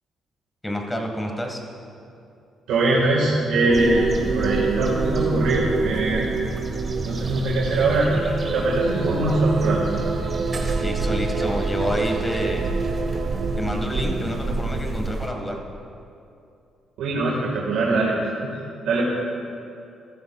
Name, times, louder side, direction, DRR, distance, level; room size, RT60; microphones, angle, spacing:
voice 1, 0.6-1.6 10.8-12.7 13.6-15.6, equal, 15° left, 2 dB, 1.7 m, -28 dB
voice 2, 2.7-4.1 4.3-6.2 7.0-8.1 8.5-9.8 17.0-18.2 18.8-19.0, right 2 dB, 90° right, -5 dB, 1.7 m, -22 dB
sound 1, 3.6-14.8, right 4 dB, 60° right, 0.8 m, -28 dB
sound 2, 3.7-15.3, right 2 dB, 40° right, 1.5 m, -30 dB
14.5 x 13.0 x 2.4 m, 2.6 s
cardioid pair, 90°, 0 cm